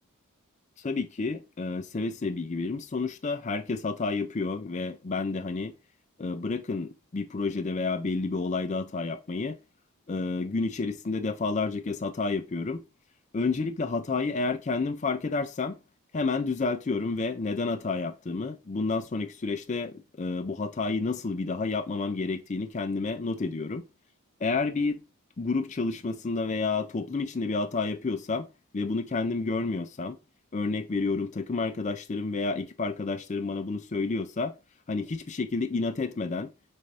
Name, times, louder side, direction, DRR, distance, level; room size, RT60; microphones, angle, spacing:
voice 1, 0.8-5.7 6.2-9.6 10.1-12.8 13.3-15.8 16.1-23.9 24.4-25.0 25.4-28.5 28.7-30.2 30.5-34.5 34.9-36.5, left 3 dB, 30° left, 0.4 m, -30 dB
4.2 x 2.6 x 3.3 m
head